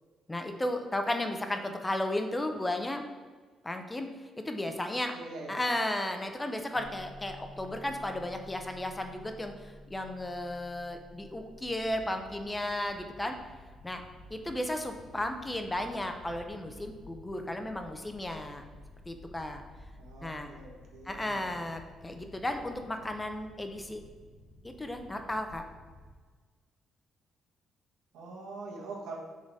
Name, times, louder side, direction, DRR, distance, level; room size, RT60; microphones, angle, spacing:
voice 1, 0.3-3.1 3.6-4.1 4.4-5.1 5.5-13.4 13.8-14.0 14.3-18.6 19.1-19.6 20.2-20.5 21.1-24.0 24.6-25.6, left 1 dB, 15° left, 5 dB, 0.7 m, -34 dB
voice 2, 4.8-5.7 20.0-21.6 28.1-29.2, right 3 dB, 90° right, -2 dB, 1.4 m, -44 dB
sound 1, 6.7-11.9, equal, 35° left, 1.2 m, -51 dB
sound 2, 11.5-26.2, left 1 dB, 80° left, 1.1 m, -53 dB
6.7 x 3.8 x 4.1 m, 1.4 s
cardioid pair, 90°, 0 cm